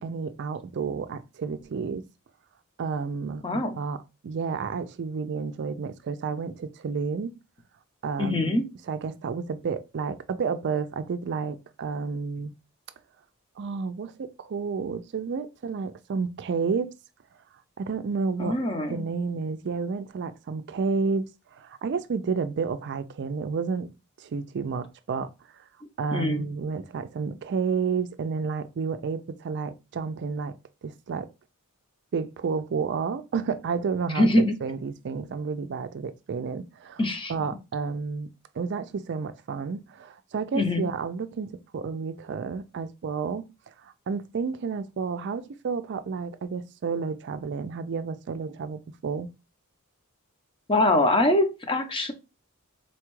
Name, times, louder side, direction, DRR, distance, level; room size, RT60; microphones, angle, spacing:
voice 1, 0.0-2.1 2.8-4.0 4.2-7.3 8.0-12.5 13.6-16.9 17.8-18.6 18.9-23.9 24.2-25.3 26.0-31.3 32.1-34.3 34.6-37.0 37.3-43.5 43.8-49.3, right 5 dB, 55° right, 0.4 m, -31 dB
voice 2, 3.4-3.7 8.2-8.7 18.4-19.0 26.1-26.4 34.1-34.6 37.0-37.3 40.5-40.9 50.7-52.1, left 1 dB, 25° left, 0.6 m, -23 dB
4.2 x 2.3 x 3.0 m
head